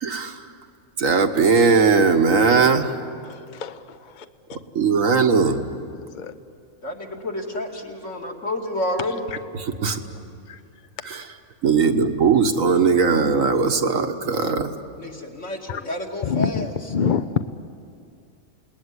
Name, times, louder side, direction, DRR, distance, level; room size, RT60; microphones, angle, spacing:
voice 1, 0.0-0.4 1.0-2.9 4.8-5.6 9.7-10.0 11.0-11.2 11.6-14.7, right 5 dB, 70° right, 5 dB, 1.8 m, -19 dB
voice 2, 3.2-4.3 6.0-6.3 10.5-10.6 15.7-15.8 16.2-17.3, left 6 dB, 45° left, 10 dB, 0.7 m, -27 dB
voice 3, 6.8-9.2 15.0-16.7, left 1 dB, 60° left, 0 dB, 2.9 m, -29 dB
28.5 x 19.5 x 9.7 m, 2.4 s
omnidirectional pair, 1.4 m